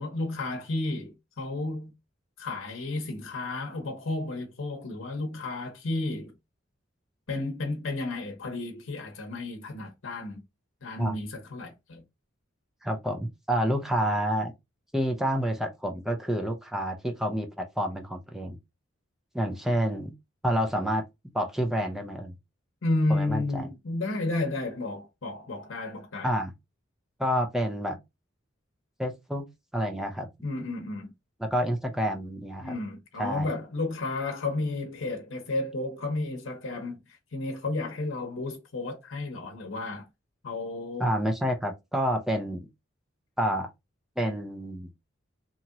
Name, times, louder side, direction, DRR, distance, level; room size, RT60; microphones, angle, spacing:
voice 1, 0.0-1.9 2.4-6.4 7.3-10.4 10.8-12.0 22.8-26.3 30.4-31.1 32.6-40.1 40.4-41.1, left 2 dB, 75° left, 0.8 m, -32 dB
voice 2, 12.8-14.5 14.9-18.6 19.3-20.1 20.4-21.0 21.3-22.3 23.1-23.4 26.2-26.5 27.2-28.0 29.0-29.4 29.7-30.3 31.4-32.7 33.2-33.5 41.0-42.7 43.4-43.7 44.2-44.9, equal, ahead, 0.5 m, -28 dB
2.9 x 2.8 x 2.4 m
head